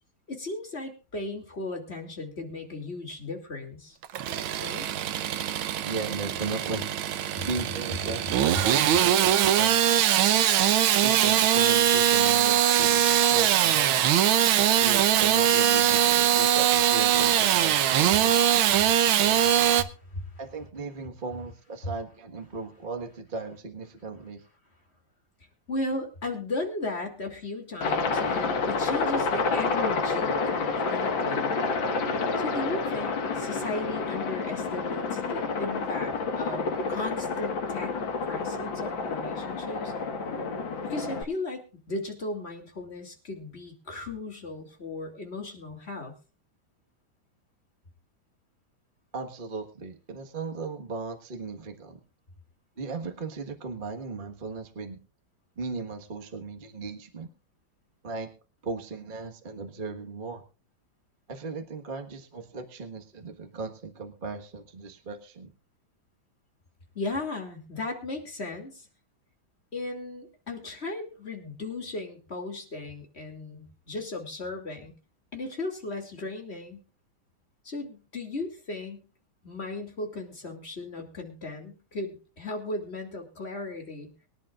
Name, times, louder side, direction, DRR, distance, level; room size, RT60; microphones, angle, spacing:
voice 1, 0.3-4.0 4.6-4.9 19.8-20.2 21.8-21.9 25.7-31.6 32.4-39.9 40.8-46.1 66.9-68.9 69.7-74.9 75.3-76.8 77.6-79.0 79.4-84.1, left 2 dB, 30° left, 3 dB, 2.9 m, -36 dB
Engine starting / Sawing, 4.0-19.8, right 10 dB, 80° right, 1.7 m, -22 dB
voice 2, 5.8-6.8 7.5-10.0 11.0-13.0 13.3-14.0 14.8-19.4 20.4-24.4 49.1-52.0 52.8-55.0 55.6-57.3 58.0-58.3 58.6-60.4 61.3-65.5, right 4 dB, 25° right, 3 dB, 1.5 m, -36 dB
Aircraft, 27.8-41.2, left 4 dB, 65° left, 2.3 m, -29 dB
24.0 x 10.5 x 2.5 m, 0.35 s
omnidirectional pair, 2.3 m